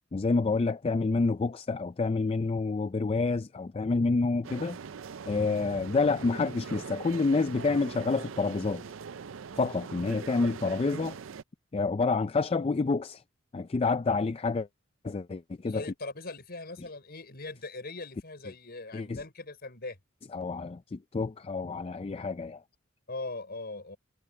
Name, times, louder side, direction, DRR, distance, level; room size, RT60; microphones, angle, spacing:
voice 1, 0.1-4.8 5.2-8.8 9.6-11.2 11.7-13.2 13.5-14.7 15.0-15.8 18.9-19.2 20.3-22.6, left 3 dB, 30° left, 0.4 m, -28 dB
sound 1, 4.4-11.4, right 6 dB, 70° right, 0.5 m, -42 dB
voice 2, 15.6-20.0 23.1-24.0, left 3 dB, 50° left, 5.3 m, -40 dB
head